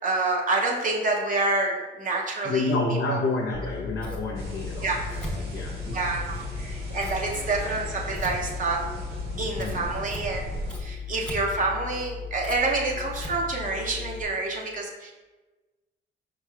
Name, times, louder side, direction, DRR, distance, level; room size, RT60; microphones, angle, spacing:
voice 1, 0.0-2.7 3.1-3.2 4.8-5.0 5.9-8.8 9.4-10.4 10.8-15.1, right 3 dB, 40° right, 0 dB, 0.6 m, -27 dB
voice 2, 2.4-6.2 7.1-7.2 9.5-9.9, left 2 dB, 75° left, -2 dB, 0.7 m, -29 dB
Scissors, 3.5-14.2, left 5 dB, 5° left, 0.8 m, -37 dB
sound 1, 4.3-10.8, right 1 dB, 85° right, 1.2 m, -37 dB
4.8 x 4.6 x 2.3 m, 1.2 s
cardioid pair, 90°, 20 cm